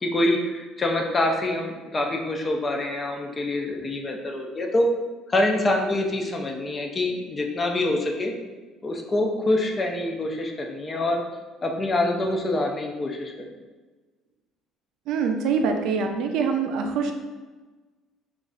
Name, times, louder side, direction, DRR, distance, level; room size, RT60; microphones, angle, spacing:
voice 1, 0.0-4.9 5.3-8.3 8.8-11.2 11.6-13.3, left 1 dB, 20° left, 2 dB, 0.3 m, -25 dB
voice 2, 15.1-17.1, right 5 dB, 60° right, 4 dB, 0.4 m, -24 dB
3.1 x 2.4 x 3.6 m, 1.3 s
cardioid pair, 165°, 0 cm